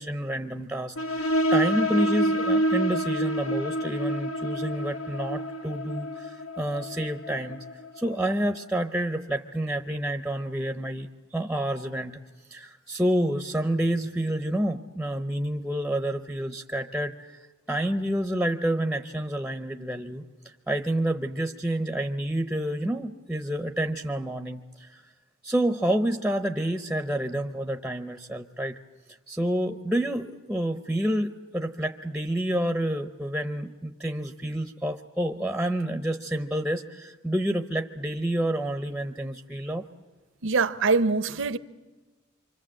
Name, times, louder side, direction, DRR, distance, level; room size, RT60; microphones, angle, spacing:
voice 1, 0.0-11.1 11.3-12.1 12.5-17.4 17.7-25.0 25.4-28.8 29.3-39.8, right 1 dB, 5° right, 0.7 m, -29 dB
sound 1, 1.0-8.3, right 1 dB, 85° left, 1.2 m, -28 dB
voice 2, 40.4-41.6, right 4 dB, 60° right, 0.8 m, -23 dB
26.0 x 25.0 x 7.6 m
head